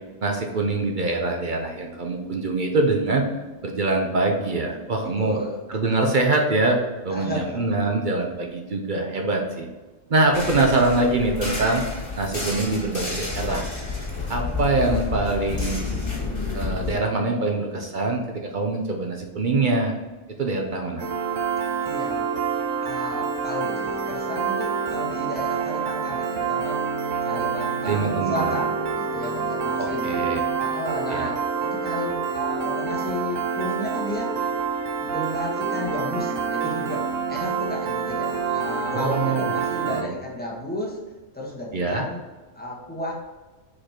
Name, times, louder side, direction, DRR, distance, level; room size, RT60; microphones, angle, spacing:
voice 1, 0.2-3.3 3.6-5.4 5.7-6.8 7.0-9.7 10.1-11.8 12.2-13.7 14.3-15.9 16.5-19.9 20.4-21.0 27.8-28.5 29.8-30.5 31.1-31.3 38.9-39.5 39.9-40.1 41.7-42.0, right 2 dB, 45° right, 2 dB, 0.7 m, -24 dB
voice 2, 5.2-5.6 7.1-7.6 21.8-22.3 22.8-26.9 27.2-30.3 30.6-34.4 35.0-41.0 41.3-42.2 42.5-43.1, left 1 dB, 10° left, -4 dB, 1.3 m, -33 dB
sound 1, 10.3-17.0, left 3 dB, 45° left, 2.1 m, -30 dB
Piano, 21.0-40.0, right 6 dB, 75° right, 1.0 m, -27 dB
5.0 x 4.3 x 4.4 m, 1.2 s
omnidirectional pair, 1.4 m